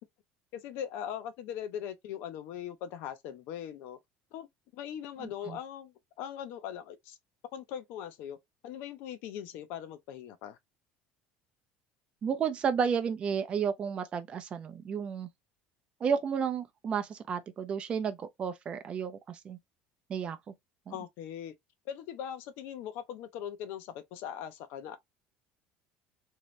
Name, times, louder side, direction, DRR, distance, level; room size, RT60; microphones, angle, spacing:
voice 1, 0.5-4.0 4.3-4.5 4.7-7.2 7.5-8.4 8.6-10.6 20.9-21.5 21.9-25.0, left 9 dB, 70° left, 0.6 m, -40 dB
voice 2, 5.2-5.6 12.2-15.3 16.0-19.6 20.1-20.4 20.9-21.0, right 7 dB, 30° right, 0.5 m, -32 dB
3.0 x 2.8 x 3.1 m
cardioid pair, 145°, 4 cm